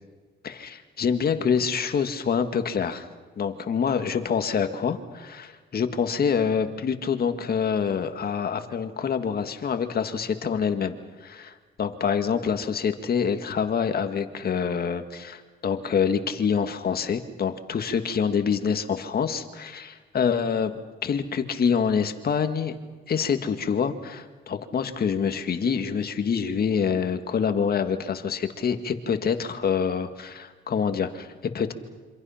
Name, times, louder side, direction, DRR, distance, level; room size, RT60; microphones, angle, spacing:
voice 1, 0.4-3.1 3.4-11.0 11.2-22.8 23.1-31.7, left 6 dB, 50° left, 7 dB, 1.9 m, -26 dB
27.0 x 26.0 x 5.8 m, 1.5 s
cardioid pair, 90°, 20 cm